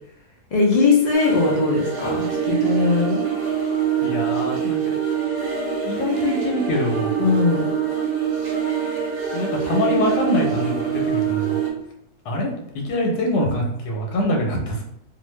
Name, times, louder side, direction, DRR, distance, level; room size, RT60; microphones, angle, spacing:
voice 1, 0.5-3.2 7.2-7.6, left 4 dB, 60° left, -3 dB, 0.4 m, -19 dB
sound 1, 1.1-11.7, right 8 dB, 45° right, 0.9 m, -24 dB
voice 2, 4.0-5.0 5.8-7.1 9.3-11.6 12.2-12.5 12.8-14.8, left 1 dB, 85° left, 1 dB, 1.3 m, -24 dB
2.7 x 2.3 x 3.1 m, 0.75 s
omnidirectional pair, 1.7 m